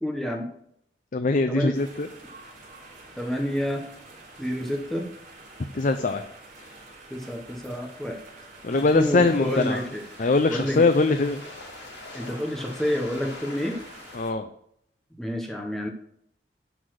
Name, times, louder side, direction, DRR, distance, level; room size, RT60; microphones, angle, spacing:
voice 1, 0.0-0.5 1.5-1.7 3.2-3.8 4.4-5.1 7.1-8.2 8.7-10.9 12.1-13.8 15.2-15.9, equal, ahead, 1 dB, 1.0 m, -29 dB
voice 2, 1.1-2.1 5.7-6.2 8.6-9.9 10.2-11.4 14.1-14.5, left 3 dB, 45° left, 8 dB, 0.5 m, -22 dB
sound 1, 1.7-14.3, right 2 dB, 50° right, 3.5 m, -48 dB
sound 2, 8.7-14.2, left 2 dB, 85° left, 2.8 m, -44 dB
11.0 x 4.1 x 6.3 m, 0.72 s
head